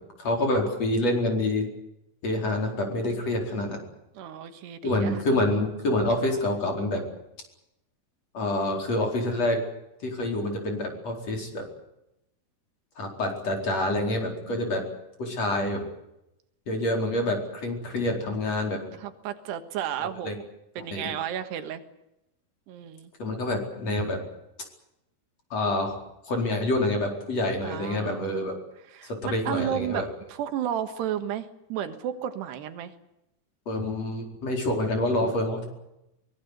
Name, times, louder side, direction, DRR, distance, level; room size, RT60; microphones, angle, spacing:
voice 1, 0.2-1.7 2.2-3.8 4.8-7.0 8.3-9.6 10.0-11.7 13.0-14.8 15.2-15.8 16.7-18.8 20.0-20.4 20.9-21.1 23.2-24.2 25.5-26.0 26.3-28.6 29.0-30.1 33.7-35.7, left 1 dB, 40° left, 2 dB, 5.4 m, -27 dB
voice 2, 2.3-2.7 4.2-5.2 14.5-14.8 19.0-20.4 20.8-21.8 22.7-23.1 27.6-28.6 28.9-32.9, right 10 dB, 85° right, 8 dB, 3.7 m, -33 dB
23.5 x 21.0 x 8.2 m, 0.87 s
omnidirectional pair, 4.7 m